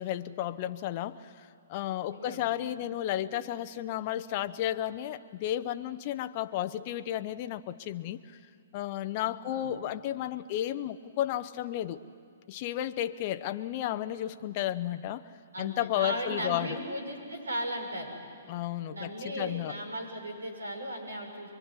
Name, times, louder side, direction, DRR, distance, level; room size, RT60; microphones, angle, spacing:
voice 1, 0.0-8.4 8.7-12.0 12.5-15.3 15.6-16.8 18.5-19.8, left 12 dB, 40° left, 10 dB, 0.8 m, -33 dB
voice 2, 2.1-2.4 9.2-9.7 15.5-18.1 18.9-21.5, right 1 dB, 90° right, 3 dB, 6.3 m, -37 dB
24.5 x 23.5 x 9.8 m, 2.3 s
hypercardioid pair, 130°, 0 cm